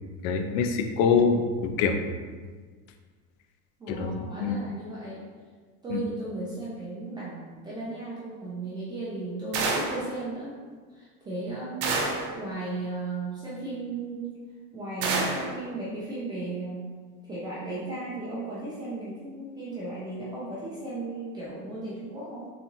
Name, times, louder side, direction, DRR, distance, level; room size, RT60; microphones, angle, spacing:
voice 1, 0.2-2.0 3.9-4.1 4.4-4.6 5.9-6.0, left 5 dB, 60° left, 6 dB, 0.5 m, -24 dB
voice 2, 3.8-5.2 5.8-10.5 10.9-14.4 14.7-16.9 17.3-22.5, right 2 dB, 10° right, -9 dB, 0.3 m, -35 dB
sound 1, 9.5-10.1 11.8-12.3 15.0-15.5, right 3 dB, 65° right, 0.8 m, -27 dB
3.8 x 2.5 x 2.9 m, 1.5 s
supercardioid pair, 140°, 39 cm